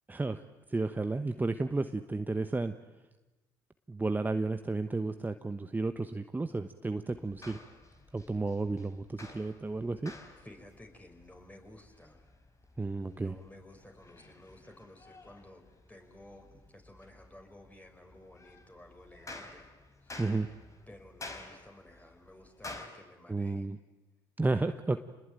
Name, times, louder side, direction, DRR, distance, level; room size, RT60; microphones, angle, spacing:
voice 1, 0.1-0.4 0.7-2.7 3.9-7.6 8.1-10.1 12.8-13.3 20.2-20.5 23.3-23.8 24.4-25.0, right 3 dB, 15° right, 9 dB, 1.1 m, -32 dB
sound 1, 7.1-22.9, left 2 dB, 30° left, 4.4 m, -51 dB
voice 2, 10.4-12.3 13.0-19.7 20.0-20.2 20.9-23.7, left 1 dB, 15° left, 4 dB, 6.0 m, -54 dB
27.5 x 20.5 x 9.3 m, 1.1 s
hypercardioid pair, 60°, 11 cm